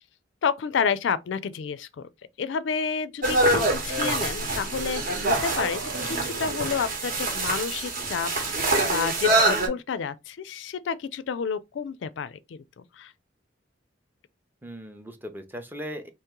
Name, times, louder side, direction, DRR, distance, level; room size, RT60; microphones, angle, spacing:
voice 1, 0.4-2.1 2.4-5.8 6.0-13.1, left 6 dB, 65° left, 0.4 m, -30 dB
sound 1, 3.2-9.7, right 2 dB, 50° right, 1.0 m, -25 dB
sound 2, 4.6-6.9, right 4 dB, 80° right, 0.6 m, -37 dB
voice 2, 5.9-6.3 14.6-16.1, equal, 10° right, 0.5 m, -38 dB
3.0 x 2.9 x 3.5 m
head